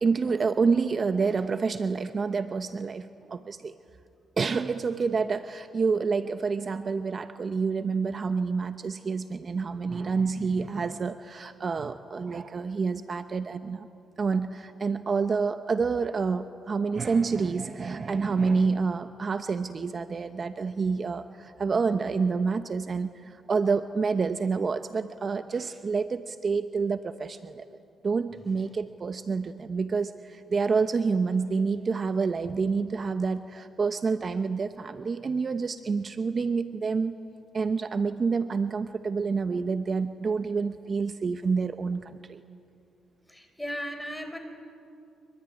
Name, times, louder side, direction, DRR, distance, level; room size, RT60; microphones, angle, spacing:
voice 1, 0.0-3.7 4.4-13.9 14.2-27.7 28.0-37.2 37.5-42.4, right 5 dB, 40° right, 10 dB, 0.9 m, -28 dB
voice 2, 43.3-44.4, equal, 5° left, 6 dB, 4.7 m, -36 dB
25.0 x 24.0 x 10.0 m, 2.6 s
cardioid pair, 90°, 0 cm